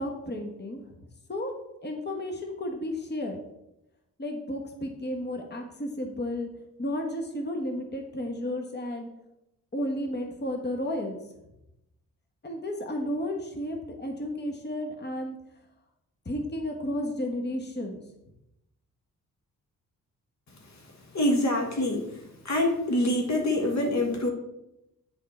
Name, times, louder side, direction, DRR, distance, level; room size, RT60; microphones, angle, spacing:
voice 1, 0.0-1.5 1.8-3.4 4.2-6.5 6.8-9.1 9.7-11.2 12.4-15.4 16.2-18.0, left 1 dB, 25° left, 3 dB, 1.3 m, -33 dB
voice 2, 21.1-22.1 22.4-24.3, left 1 dB, 45° left, 3 dB, 1.3 m, -25 dB
7.3 x 4.6 x 4.3 m, 0.88 s
supercardioid pair, 45°, 38 cm